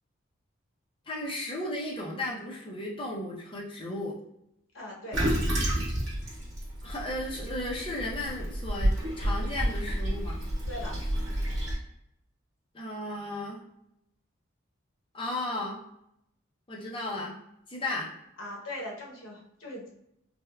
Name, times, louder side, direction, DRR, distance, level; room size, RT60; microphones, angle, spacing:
voice 1, 1.1-4.2 6.8-10.4 12.7-13.6 15.1-15.8 16.7-17.4 17.7-18.1, left 1 dB, 25° left, -3 dB, 0.6 m, -35 dB
voice 2, 4.7-5.3 10.7-11.0 18.4-19.9, left 1 dB, 85° left, -2 dB, 0.9 m, -39 dB
Toilet flush, 5.1-11.7, equal, 65° right, 1.0 m, -30 dB
3.4 x 2.2 x 2.2 m, 0.79 s
head